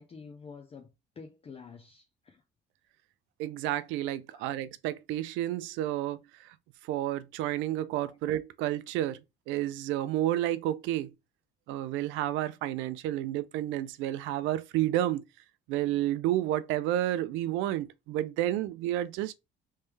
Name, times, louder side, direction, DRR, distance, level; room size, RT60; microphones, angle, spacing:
voice 1, 0.0-2.4 4.3-4.5 8.1-8.2, left 5 dB, 30° left, 0.6 m, -49 dB
voice 2, 3.4-6.2 6.9-11.1 11.7-15.2 15.7-19.4, right 13 dB, 85° right, 0.5 m, -30 dB
3.2 x 3.2 x 3.2 m
cardioid pair, 100°, 19 cm